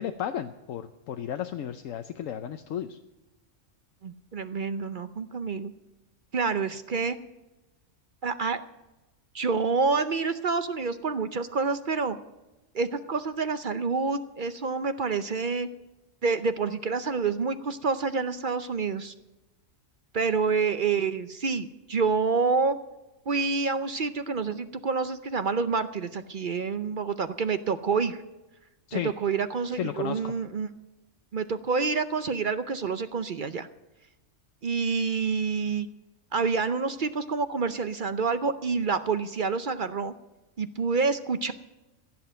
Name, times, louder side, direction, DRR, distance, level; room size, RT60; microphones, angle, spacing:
voice 1, 0.0-3.0 28.9-29.1 29.7-30.3, left 9 dB, 80° left, 8 dB, 1.1 m, -33 dB
voice 2, 4.0-5.7 6.3-7.2 8.2-8.6 9.3-12.2 12.7-15.7 16.2-19.1 20.1-22.8 23.3-28.2 28.9-30.7 31.3-33.7 34.6-35.9 36.3-40.1 40.6-41.5, right 4 dB, 50° right, 11 dB, 0.7 m, -28 dB
16.0 x 7.7 x 8.9 m, 1.0 s
omnidirectional pair, 1.3 m